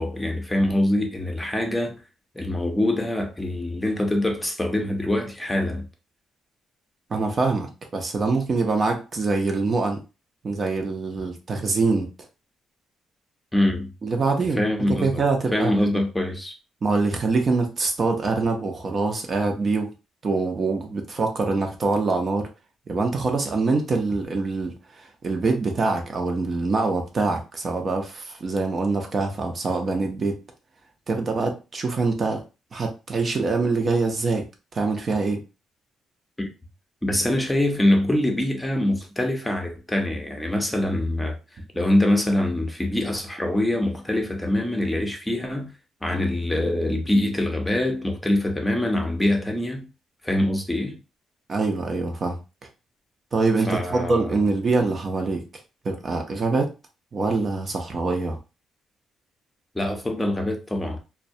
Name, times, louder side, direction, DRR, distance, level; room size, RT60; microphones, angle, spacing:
voice 1, 0.0-2.0 2.3-5.9 13.5-13.9 14.6-15.2 15.5-16.5 36.4-36.5 37.0-41.4 41.7-45.7 46.0-49.9 50.2-51.0 53.7-54.3 59.7-61.0, left 1 dB, 10° left, 0.6 m, -24 dB
voice 2, 7.1-10.0 10.4-12.1 14.0-15.9 16.8-19.9 20.2-22.5 22.9-30.4 31.1-32.4 32.7-34.4 34.7-35.4 51.5-52.4 53.3-55.4 55.8-56.7 57.1-58.4, right 3 dB, 45° right, 0.5 m, -24 dB
2.2 x 2.1 x 2.6 m
cardioid pair, 90°, 0 cm